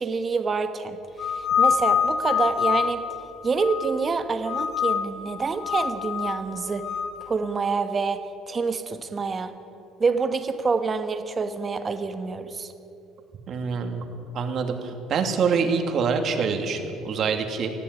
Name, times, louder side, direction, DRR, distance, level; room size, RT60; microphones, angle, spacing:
voice 1, 0.0-3.0 3.4-6.9 7.3-9.5 10.0-12.7, right 4 dB, 30° right, 9 dB, 1.4 m, -27 dB
sound 1, 1.2-4.1 4.5-5.2 5.6-7.1, left 7 dB, 45° left, 1.9 m, -25 dB
voice 2, 13.5-14.0 14.3-17.7, right 5 dB, 50° right, 5 dB, 2.6 m, -25 dB
20.5 x 14.5 x 9.7 m, 2.8 s
cardioid pair, 125°, 0 cm